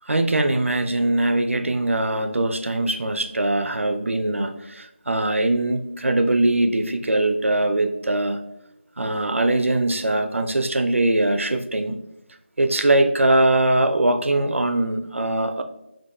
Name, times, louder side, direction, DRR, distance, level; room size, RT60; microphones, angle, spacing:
voice 1, 0.1-8.4 9.0-12.0 12.6-15.6, right 2 dB, 85° right, 8 dB, 0.4 m, -21 dB
3.0 x 2.6 x 3.4 m, 0.83 s
figure-of-eight pair, 170°, 7 cm